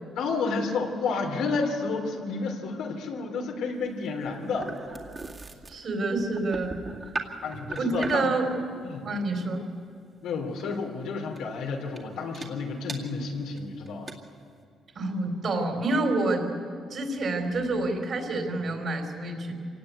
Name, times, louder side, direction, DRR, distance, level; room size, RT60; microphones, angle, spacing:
voice 1, 0.2-4.8 7.4-8.3 8.8-9.1 10.2-14.1, left 4 dB, 90° left, 1 dB, 3.6 m, -31 dB
sound 1, 3.8-8.4 10.6-10.8 11.3-11.5 11.9-12.0 12.3-12.5 12.9-13.0 13.6-13.7 13.9-14.1, right 3 dB, 30° right, 2.2 m, -38 dB
voice 2, 5.7-6.7 7.8-8.5 9.0-9.6 15.0-16.5 16.9-19.5, right 2 dB, 55° right, 3 dB, 4.0 m, -28 dB
26.0 x 18.5 x 8.2 m, 2.3 s
cardioid pair, 90°, 0 cm